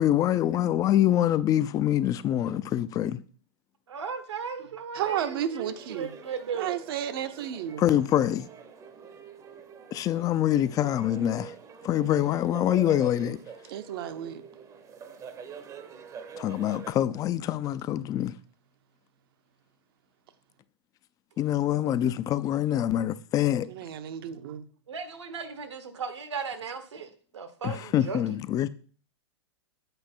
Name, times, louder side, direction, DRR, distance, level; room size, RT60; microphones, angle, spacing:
voice 1, 0.0-3.2 7.8-8.5 9.9-11.5 11.8-13.4 16.4-18.3 21.4-23.7 27.6-28.7, left 11 dB, 25° left, 0.4 m, -25 dB
voice 2, 3.9-6.8 24.9-28.2, right 6 dB, 80° right, 1.3 m, -36 dB
voice 3, 4.9-6.1 6.6-7.8 13.7-14.4 23.7-24.6, right 10 dB, 55° right, 0.8 m, -32 dB
sound 1, 5.1-16.9, right 6 dB, 20° right, 0.8 m, -45 dB
8.0 x 4.7 x 4.4 m
hypercardioid pair, 110°, 15 cm